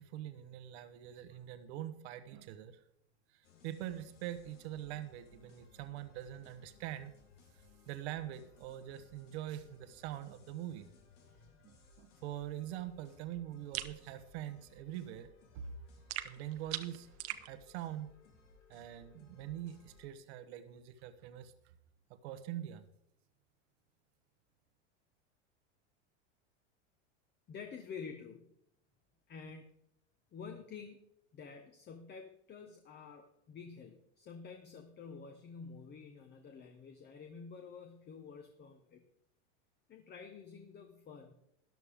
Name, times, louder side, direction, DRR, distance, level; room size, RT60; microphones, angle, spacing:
voice 1, 0.0-2.8 3.6-7.1 7.9-10.9 11.6-15.3 15.5-15.7 16.2-17.1 17.5-18.1 18.7-21.5 22.2-22.8, right 12 dB, 65° right, 10 dB, 1.1 m, -44 dB
sound 1, 3.4-20.1, left 4 dB, 85° left, 3.2 m, -63 dB
sound 2, 13.7-14.0 16.1-17.5, right 14 dB, 40° right, 0.9 m, -40 dB
voice 2, 27.5-28.5 29.3-29.7 30.3-31.0 31.3-39.0 39.9-41.4, left 5 dB, 30° left, 6 dB, 1.2 m, -49 dB
13.5 x 11.0 x 3.6 m, 0.76 s
supercardioid pair, 120°, 36 cm